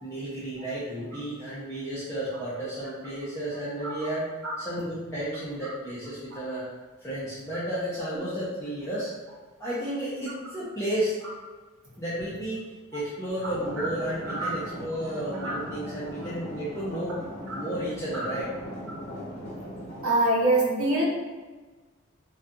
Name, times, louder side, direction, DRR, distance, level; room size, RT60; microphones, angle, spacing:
voice 1, 0.0-4.3 4.6-6.7 7.0-9.1 9.6-11.2 12.0-12.6 12.9-17.2 17.5-18.5, right 1 dB, 15° left, -10 dB, 0.4 m, -32 dB
sound 1, 13.4-20.0, equal, 30° left, 0.8 m, -39 dB
voice 2, 20.0-21.0, right 2 dB, 85° right, -6 dB, 0.9 m, -25 dB
2.5 x 2.2 x 2.6 m, 1.3 s
head